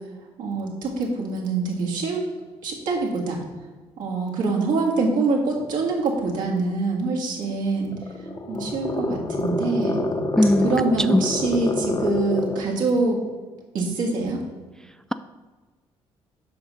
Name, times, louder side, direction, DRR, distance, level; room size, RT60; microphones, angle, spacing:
voice 1, 0.4-2.2 2.6-3.4 4.0-7.9 8.5-10.0 10.6-13.2 13.7-14.4, right 3 dB, 65° right, -2 dB, 1.8 m, -24 dB
sound 1, 7.8-12.7, left 2 dB, 30° left, 1.1 m, -27 dB
voice 2, 10.3-10.7 11.1-11.3, left 1 dB, 5° left, 11 dB, 0.3 m, -18 dB
7.7 x 5.9 x 4.0 m, 1.3 s
hypercardioid pair, 45°, 15 cm